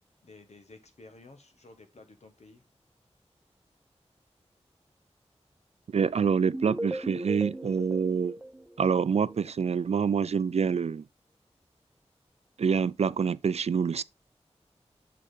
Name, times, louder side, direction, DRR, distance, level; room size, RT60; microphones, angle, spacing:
voice 1, 0.2-2.6, left 2 dB, 75° left, 1.5 m, -53 dB
voice 2, 5.9-8.4 8.8-11.0 12.6-14.0, right 6 dB, 70° right, 0.4 m, -26 dB
sound 1, 6.5-9.5, right 1 dB, 5° right, 0.9 m, -38 dB
6.6 x 6.3 x 3.9 m
wide cardioid pair, 80°, 11 cm